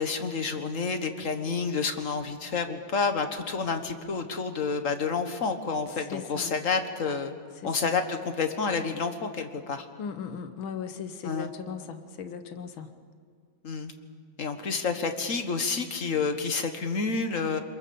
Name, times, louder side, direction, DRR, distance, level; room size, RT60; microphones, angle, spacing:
voice 1, 0.0-7.3 7.6-9.9 11.2-11.5 13.6-13.9 14.4-17.6, left 5 dB, 45° left, 7 dB, 1.6 m, -29 dB
voice 2, 6.1-6.6 7.6-7.9 10.0-12.9, left 7 dB, 85° left, 9 dB, 2.0 m, -38 dB
27.0 x 22.0 x 7.1 m, 2.1 s
omnidirectional pair, 2.1 m